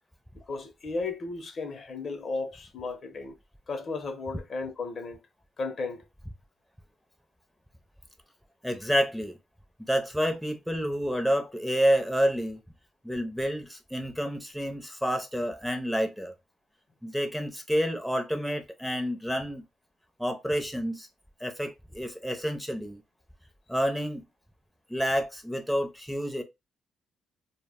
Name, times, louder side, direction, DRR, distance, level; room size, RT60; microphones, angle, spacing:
voice 1, 0.4-3.4 3.7-5.2 5.6-6.0, left 3 dB, 50° left, 0.5 m, -34 dB
voice 2, 8.6-9.4 9.9-12.6 13.0-16.3 17.0-19.6 20.2-21.1 21.4-23.0 23.7-24.2 24.9-26.4, equal, ahead, 0.5 m, -29 dB
2.0 x 2.0 x 3.4 m
cardioid pair, 90°, 0 cm